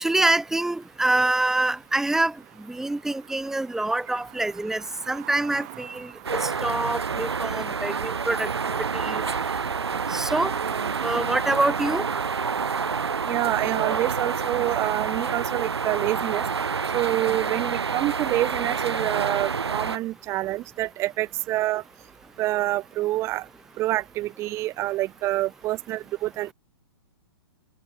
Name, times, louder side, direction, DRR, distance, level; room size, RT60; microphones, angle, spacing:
voice 1, 0.0-8.5 8.8-9.3 10.1-10.5 11.0-12.1, right 2 dB, 5° right, 0.9 m, -26 dB
sound 1, 2.4-15.1, right 21 dB, 45° right, 2.2 m, -45 dB
sound 2, 6.2-20.0, right 5 dB, 90° right, 1.8 m, -28 dB
voice 2, 13.3-16.4 16.9-21.8 22.4-23.4 23.8-26.5, right 16 dB, 20° right, 0.4 m, -27 dB
hypercardioid pair, 130°, 13 cm